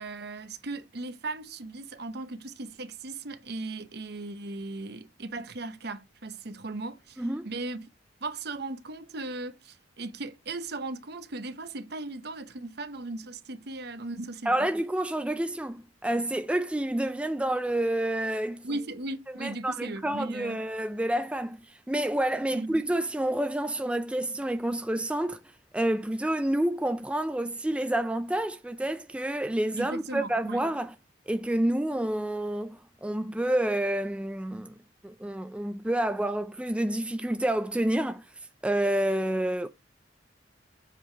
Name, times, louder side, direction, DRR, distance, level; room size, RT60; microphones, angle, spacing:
voice 1, 0.0-7.8 8.2-14.7 18.6-20.7 22.5-22.7 29.8-30.6, right 2 dB, 60° right, 0.9 m, -37 dB
voice 2, 7.2-7.5 14.5-18.7 19.4-25.4 25.7-30.9 31.3-34.7 35.0-38.2 38.6-39.7, right 1 dB, 5° right, 0.4 m, -29 dB
7.8 x 5.0 x 4.5 m
head